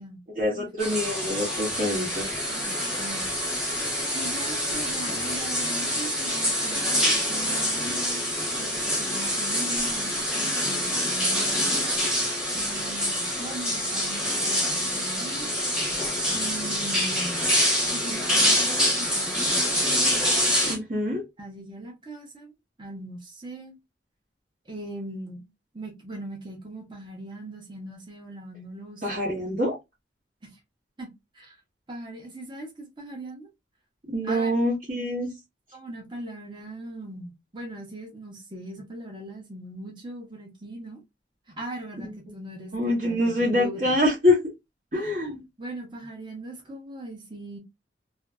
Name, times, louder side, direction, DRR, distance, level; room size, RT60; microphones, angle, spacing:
voice 1, 0.3-2.3 20.6-21.2 29.0-29.8 34.1-35.3 42.7-44.4 44.9-45.4, left 1 dB, 45° right, 1.1 m, -25 dB
sound 1, 0.8-20.8, equal, 5° right, 1.0 m, -26 dB
voice 2, 2.5-3.2 4.1-8.2 8.6-12.0 12.5-15.5 16.3-17.5 17.9-19.6 21.4-22.5 22.8-23.8 24.7-25.5 25.7-29.2 30.4-30.6 31.0-31.1 31.3-31.5 31.9-33.5 34.2-34.5 35.7-41.0 41.5-44.0 44.9-45.1 45.6-47.6, right 1 dB, 25° right, 0.9 m, -40 dB
2.7 x 2.6 x 2.3 m
head